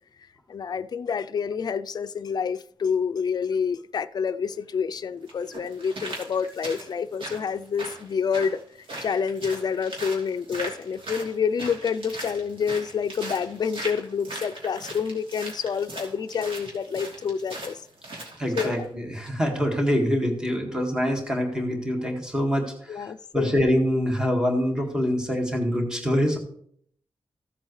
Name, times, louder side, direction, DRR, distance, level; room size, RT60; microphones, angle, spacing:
voice 1, 0.5-8.6 9.0-17.8 18.6-18.9 22.9-23.6, left 6 dB, 50° left, 0.4 m, -28 dB
sound 1, 4.4-4.5 5.3-18.9 19.3-19.4, right 2 dB, 75° right, 3.0 m, -39 dB
voice 2, 18.4-26.4, equal, 10° right, 1.7 m, -25 dB
15.5 x 7.5 x 3.2 m
wide cardioid pair, 180°, 9 cm